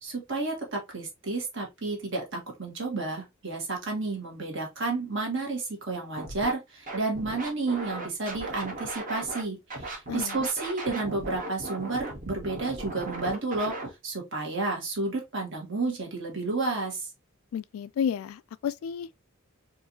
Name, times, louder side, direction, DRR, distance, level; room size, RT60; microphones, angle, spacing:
voice 1, 0.0-13.7 14.0-17.1, right 3 dB, 65° right, 1.6 m, -31 dB
Scratching (performance technique), 6.2-6.5 6.9-9.4 9.7-13.9, right 2 dB, 45° right, 1.1 m, -37 dB
voice 2, 10.1-10.5 17.5-19.2, left 8 dB, 85° left, 0.3 m, -32 dB
4.6 x 2.6 x 2.7 m
head